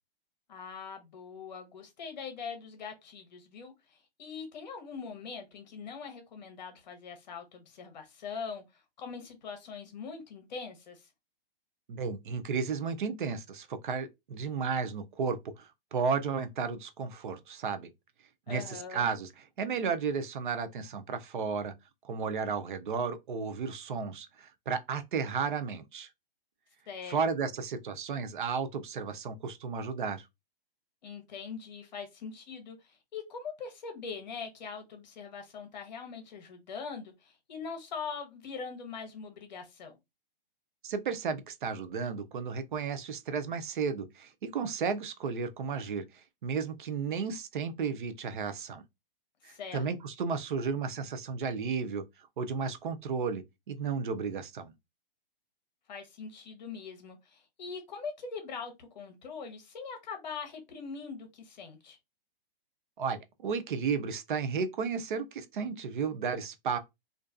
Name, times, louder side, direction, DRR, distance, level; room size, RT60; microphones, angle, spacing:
voice 1, 0.5-11.1 18.5-19.1 26.9-27.2 31.0-40.0 49.4-49.8 55.9-62.0, left 5 dB, 50° left, 0.9 m, -42 dB
voice 2, 11.9-17.9 18.5-19.3 19.6-21.7 22.0-26.1 27.1-30.2 40.8-48.8 49.4-52.0 52.4-54.7 63.0-66.8, right 5 dB, 60° right, 0.5 m, -33 dB
2.4 x 2.3 x 2.3 m
hypercardioid pair, 165°, 29 cm